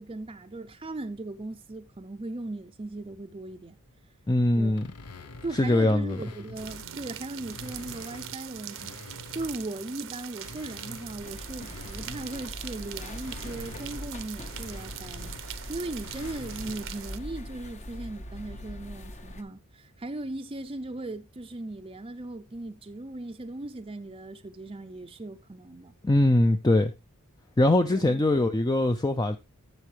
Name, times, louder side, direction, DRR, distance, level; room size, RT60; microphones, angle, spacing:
voice 1, 0.0-3.8 4.5-4.9 5.4-25.9 27.9-28.2, right 2 dB, 25° right, 0.6 m, -38 dB
voice 2, 4.3-4.8 5.5-6.2 26.0-26.9 27.6-29.4, left 1 dB, 15° left, 0.5 m, -22 dB
sound 1, 4.7-7.0 7.4-9.8 10.2-17.0, left 3 dB, 90° left, 1.0 m, -47 dB
sound 2, 6.6-17.2, right 10 dB, 60° right, 0.8 m, -42 dB
sound 3, 11.2-19.4, left 1 dB, 30° left, 0.9 m, -41 dB
12.0 x 7.5 x 3.3 m
head